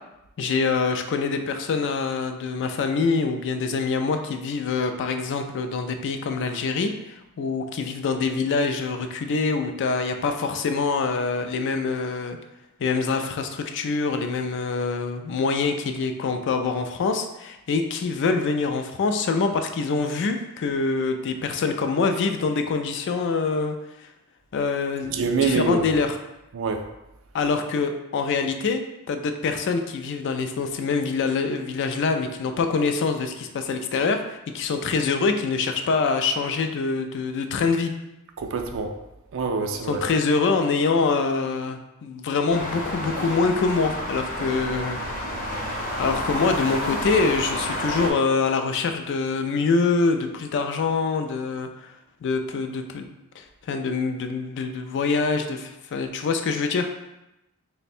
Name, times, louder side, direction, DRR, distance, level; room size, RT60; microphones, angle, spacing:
voice 1, 0.4-12.4 12.8-24.1 24.5-26.2 27.3-37.9 39.9-45.0 46.0-51.9 52.2-53.1 53.4-56.9, left 4 dB, 55° left, 6 dB, 0.3 m, -25 dB
voice 2, 25.1-25.8 26.5-26.8 38.4-38.9 39.3-40.0, right 4 dB, 60° right, 4 dB, 0.4 m, -25 dB
sound 1, 42.5-48.1, left 1 dB, 40° left, 0.8 m, -30 dB
3.2 x 2.1 x 4.2 m, 0.93 s
head